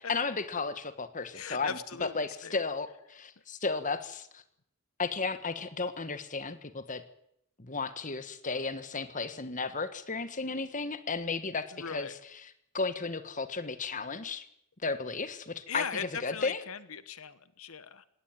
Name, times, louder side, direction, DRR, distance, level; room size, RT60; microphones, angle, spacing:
voice 1, 0.1-4.4 5.0-7.0 7.6-14.4 14.8-16.6, left 4 dB, 35° left, 11 dB, 1.5 m, -34 dB
voice 2, 1.3-2.5 11.7-12.1 15.7-18.1, left 6 dB, 70° left, 14 dB, 1.3 m, -39 dB
18.0 x 17.5 x 9.5 m, 0.74 s
head